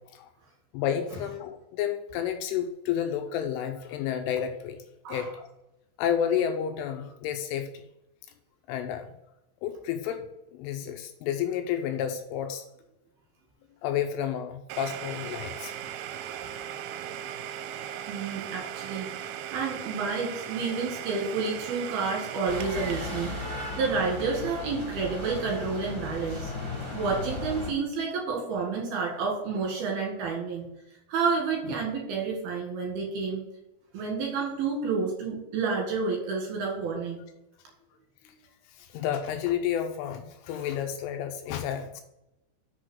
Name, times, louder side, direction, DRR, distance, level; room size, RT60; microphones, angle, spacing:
voice 1, 0.7-4.8 5.1-5.5 6.0-7.8 8.7-9.1 9.6-10.2 10.5-12.7 13.8-15.7 16.1-16.4 17.8-18.0 38.2-38.4 38.8-42.0, left 9 dB, 80° left, 6 dB, 3.0 m, -31 dB
Domestic sounds home sounds, 14.7-26.3, right 10 dB, 85° right, 3.1 m, -39 dB
voice 2, 18.1-19.1 19.5-26.5 26.9-30.7 31.1-33.4 33.9-37.2, right 4 dB, 60° right, -1 dB, 3.1 m, -30 dB
sound 1, 22.4-27.7, left 3 dB, 15° right, 1.0 m, -36 dB
6.8 x 6.3 x 6.2 m, 0.88 s
omnidirectional pair, 5.9 m